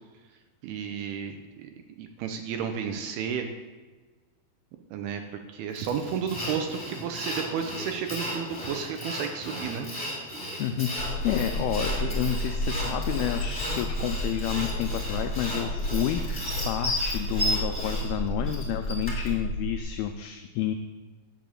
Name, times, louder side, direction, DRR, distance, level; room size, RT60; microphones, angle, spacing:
voice 1, 0.6-1.7 2.0-3.5 4.9-5.2 5.5-9.9, right 7 dB, 85° right, 5 dB, 2.4 m, -32 dB
Sawing, 5.8-19.3, equal, 5° right, 2.6 m, -34 dB
voice 2, 10.6-20.7, left 11 dB, 90° left, 7 dB, 2.2 m, -30 dB
sound 1, 11.0-19.8, equal, 55° left, 2.2 m, -32 dB
9.7 x 5.4 x 7.6 m, 1.3 s
omnidirectional pair, 5.0 m